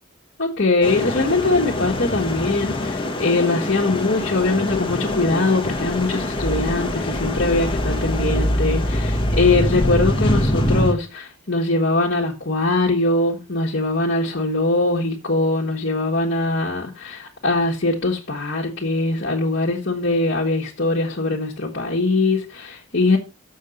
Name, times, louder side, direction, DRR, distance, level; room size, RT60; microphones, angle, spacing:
voice 1, 0.4-23.2, left 2 dB, 55° left, 1.5 m, -22 dB
sound 1, 0.8-10.9, left 1 dB, 25° left, 1.2 m, -23 dB
6.8 x 6.4 x 5.2 m
head